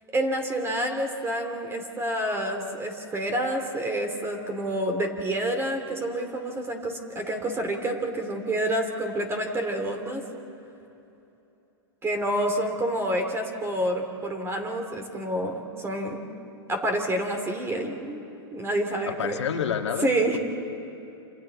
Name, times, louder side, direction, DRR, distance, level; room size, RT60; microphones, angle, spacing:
voice 1, 0.1-10.2 12.0-16.2 16.7-18.2 18.5-19.4 20.0-20.4, right 1 dB, 20° right, 4 dB, 3.0 m, -28 dB
voice 2, 19.1-20.1, left 8 dB, 90° left, 5 dB, 1.8 m, -28 dB
28.0 x 27.5 x 4.2 m, 3.0 s
hypercardioid pair, 130°, 14 cm